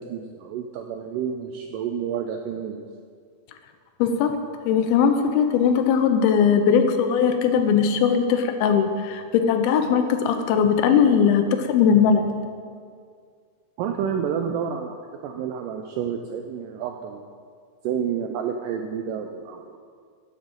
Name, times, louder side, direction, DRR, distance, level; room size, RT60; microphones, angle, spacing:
voice 1, 0.0-2.8 13.8-15.0 15.2-17.2 17.8-19.8, right 7 dB, 85° right, 4 dB, 1.9 m, -29 dB
voice 2, 4.0-4.4 4.7-12.3, left 7 dB, 85° left, 7 dB, 2.6 m, -19 dB
14.0 x 7.3 x 3.7 m, 2.1 s
omnidirectional pair, 4.3 m